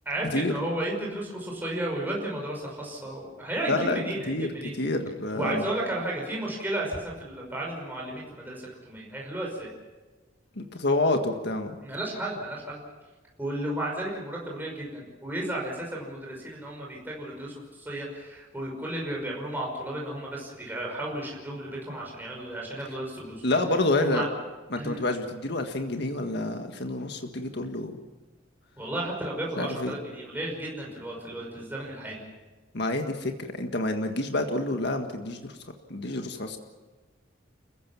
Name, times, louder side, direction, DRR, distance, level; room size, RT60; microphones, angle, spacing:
voice 1, 0.1-4.7 5.3-9.7 11.8-12.8 13.4-23.4 24.0-24.3 24.8-25.0 28.8-32.2, right 1 dB, 10° right, -3 dB, 5.7 m, -33 dB
voice 2, 3.7-4.0 4.3-5.6 10.6-11.7 23.4-24.2 24.7-28.0 29.6-29.9 32.7-35.4 35.9-36.6, left 2 dB, 65° left, 5 dB, 1.7 m, -28 dB
29.5 x 15.5 x 7.3 m, 1.2 s
head